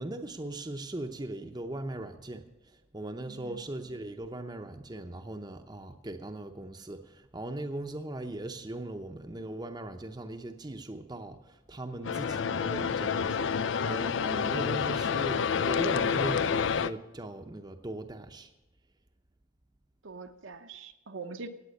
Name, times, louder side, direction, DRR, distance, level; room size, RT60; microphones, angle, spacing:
voice 1, 0.0-13.5 13.8-18.5, right 1 dB, 20° right, 6 dB, 0.7 m, -39 dB
voice 2, 3.3-3.6 20.0-21.5, right 4 dB, 70° right, 7 dB, 0.9 m, -43 dB
sound 1, 12.0-16.9, left 6 dB, 65° left, 0.4 m, -28 dB
17.0 x 8.9 x 6.5 m, 1.0 s
head